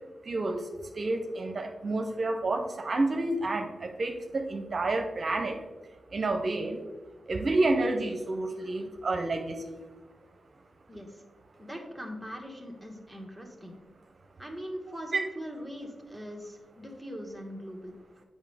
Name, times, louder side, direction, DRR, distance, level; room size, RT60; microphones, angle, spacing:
voice 1, 0.2-0.7 0.9-5.6 6.1-6.8 7.3-9.6, right 2 dB, 55° right, 4 dB, 0.7 m, -29 dB
voice 2, 10.9-11.2 11.6-13.8 14.4-17.9, equal, 5° right, 0 dB, 1.6 m, -41 dB
7.3 x 5.4 x 3.4 m, 1.2 s
supercardioid pair, 45°, 0 cm